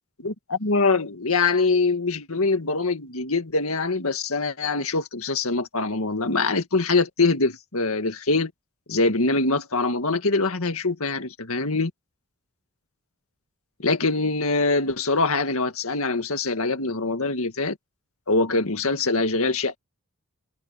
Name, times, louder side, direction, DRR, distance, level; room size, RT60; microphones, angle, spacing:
voice 1, 0.2-8.5 8.9-11.9 13.8-17.8 18.3-19.8, left 3 dB, 75° left, 1.9 m, -23 dB
head